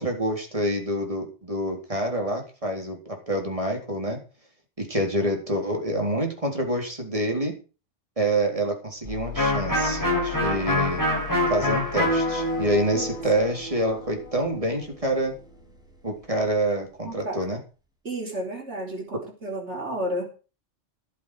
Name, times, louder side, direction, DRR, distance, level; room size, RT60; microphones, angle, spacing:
voice 1, 0.0-4.2 4.8-7.5 8.2-11.0 11.5-15.3 16.0-17.6, right 1 dB, 30° right, 2 dB, 4.0 m, -27 dB
sound 1, 9.0-17.2, left 9 dB, 5° right, 3.1 m, -41 dB
Electric guitar, 9.3-15.0, left 1 dB, 15° left, 7.0 m, -26 dB
voice 2, 17.0-17.4 18.0-20.3, right 1 dB, 75° right, 0 dB, 4.4 m, -32 dB
12.0 x 11.0 x 5.0 m, 0.34 s
omnidirectional pair, 1.2 m